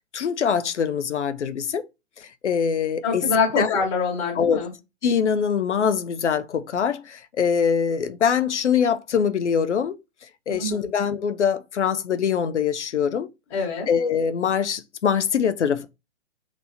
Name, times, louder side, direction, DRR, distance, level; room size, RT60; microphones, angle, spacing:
voice 1, 0.1-1.8 2.2-3.2 3.6-3.8 4.4-4.6 5.0-10.0 10.5-13.3 13.9-15.9, left 7 dB, 75° left, 0.6 m, -23 dB
voice 2, 3.0-4.7 10.6-10.9 13.5-13.9, left 5 dB, 30° left, 1.3 m, -24 dB
3.4 x 2.9 x 2.6 m
figure-of-eight pair, 120°, 36 cm